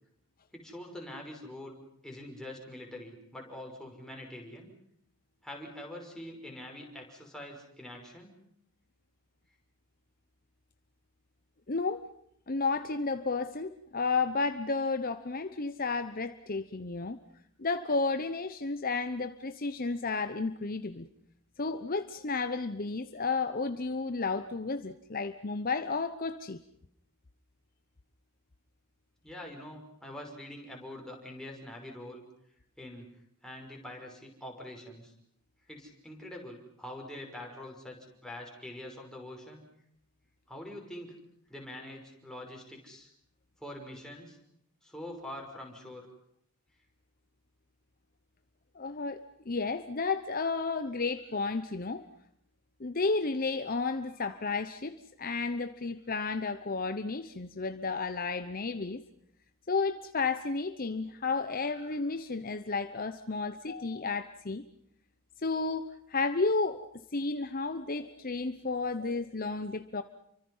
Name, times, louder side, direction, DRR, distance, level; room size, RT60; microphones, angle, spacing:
voice 1, 0.5-1.8 2.0-4.7 5.4-8.3 29.2-32.2 32.8-33.1 33.4-35.1 35.7-39.6 40.5-41.2 41.5-43.1 43.6-44.4 44.8-46.1, left 1 dB, 5° left, 0 dB, 5.8 m, -44 dB
voice 2, 11.7-12.0 12.5-17.2 17.6-21.1 21.6-26.6 48.8-49.2 49.5-52.1 52.8-59.0 59.7-64.6 65.4-66.8 67.1-70.0, left 4 dB, 40° left, 9 dB, 0.9 m, -32 dB
29.5 x 24.5 x 5.6 m, 0.72 s
head